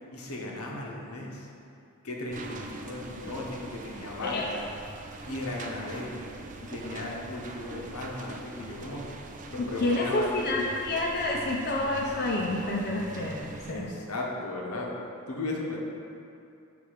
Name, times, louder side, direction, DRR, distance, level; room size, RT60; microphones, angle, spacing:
voice 1, 0.1-1.5 2.0-4.7 5.3-6.3 6.6-9.1 9.5-10.2 13.6-14.9 15.3-15.8, left 2 dB, 80° left, -2 dB, 0.9 m, -36 dB
sound 1, 2.3-13.7, right 3 dB, 35° right, 0.4 m, -43 dB
voice 2, 9.6-13.9, left 2 dB, 45° left, -2 dB, 0.5 m, -29 dB
6.5 x 3.4 x 4.9 m, 2.6 s
head